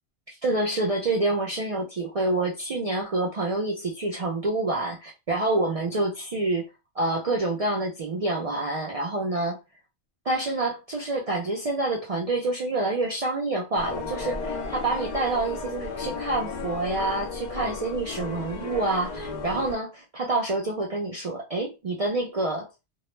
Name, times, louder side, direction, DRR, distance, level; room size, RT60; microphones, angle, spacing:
voice 1, 0.3-6.7 7.0-9.6 10.3-22.7, right 2 dB, 55° right, 0.4 m, -27 dB
sound 1, 13.7-19.8, left 4 dB, 60° left, 0.5 m, -34 dB
2.3 x 2.0 x 3.0 m
omnidirectional pair, 1.1 m